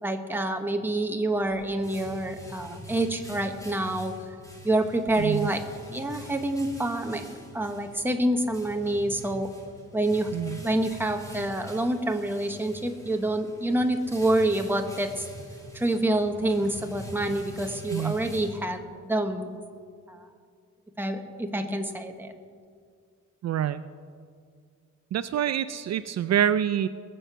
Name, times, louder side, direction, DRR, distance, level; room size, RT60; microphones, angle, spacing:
voice 1, 0.0-4.1 4.6-5.6 5.9-9.5 9.9-10.4 10.6-15.3 15.7-19.6 20.1-20.3 21.0-22.3, right 1 dB, 5° right, 5 dB, 0.9 m, -27 dB
sound 1, 1.3-19.1, equal, 10° left, 2.5 m, -45 dB
voice 2, 5.2-5.5 10.3-10.6 17.9-18.1 23.4-23.8 25.1-26.9, right 10 dB, 60° right, 12 dB, 0.4 m, -26 dB
19.5 x 7.7 x 6.8 m, 2.1 s
wide cardioid pair, 160°, 31 cm